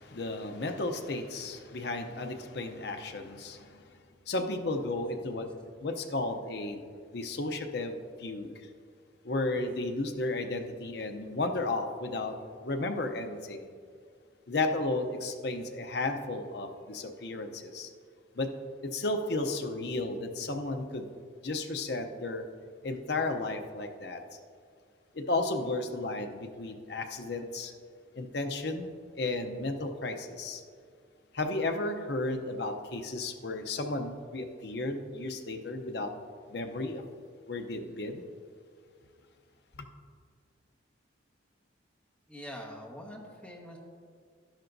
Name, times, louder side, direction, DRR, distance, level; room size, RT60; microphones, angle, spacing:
voice 1, 0.0-3.8 4.3-5.5 5.8-6.9 7.1-8.7 9.2-12.4 12.6-13.7 14.5-17.9 18.4-18.5 18.8-21.0 21.4-22.4 22.8-24.2 25.1-27.7 28.2-30.6 31.3-36.1 36.5-37.0 37.5-38.2, left 2 dB, 55° left, 5 dB, 0.7 m, -33 dB
voice 2, 42.3-43.8, equal, 5° left, -2 dB, 1.3 m, -44 dB
12.0 x 10.5 x 2.6 m, 2.2 s
head